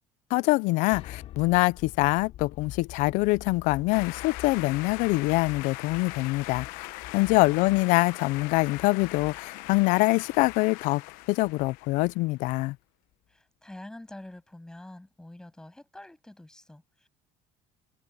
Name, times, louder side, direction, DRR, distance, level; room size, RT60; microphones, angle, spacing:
voice 1, 0.3-6.9 7.1-11.0 11.3-12.8, left 23 dB, 65° left, 0.4 m, -24 dB
sound 1, 0.9-12.7, left 13 dB, 50° left, 2.9 m, -46 dB
sound 2, 3.9-12.2, left 20 dB, 85° left, 0.9 m, -41 dB
voice 2, 13.3-17.1, left 1 dB, 5° left, 7.5 m, -47 dB
cardioid pair, 175°, 14 cm